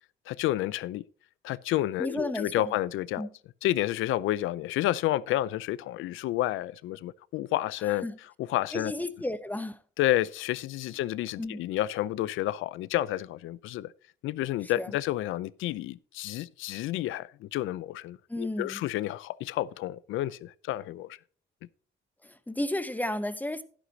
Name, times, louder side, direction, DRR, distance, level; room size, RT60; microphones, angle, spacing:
voice 1, 0.3-1.0 1.4-3.3 3.6-8.1 8.4-8.9 10.0-13.9 14.2-21.2, left 14 dB, 90° left, 0.5 m, -30 dB
voice 2, 2.0-2.7 3.2-3.3 8.0-8.2 8.7-9.8 11.4-11.6 14.6-14.9 18.3-18.8 22.2-23.6, left 1 dB, 10° left, 1.0 m, -33 dB
11.5 x 11.5 x 2.8 m
cardioid pair, 90°, 20 cm